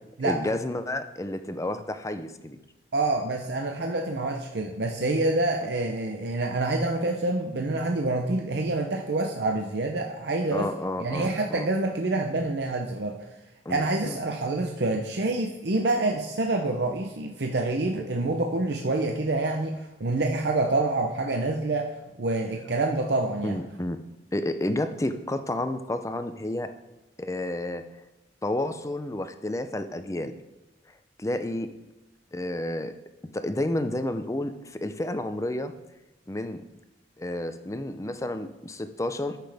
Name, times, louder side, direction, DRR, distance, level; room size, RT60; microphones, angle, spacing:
voice 1, 0.2-2.6 10.5-11.7 13.7-14.2 23.4-24.0 24.3-26.7 27.2-27.8 28.4-30.3 31.2-31.7 32.3-32.9 33.3-35.7 36.3-36.6 37.2-39.4, left 1 dB, 15° left, 9 dB, 0.5 m, -30 dB
voice 2, 2.9-10.7 11.0-13.2 13.7-21.9 22.2-23.6, right 2 dB, 65° right, 2 dB, 0.7 m, -27 dB
13.5 x 5.9 x 3.5 m, 1.0 s
head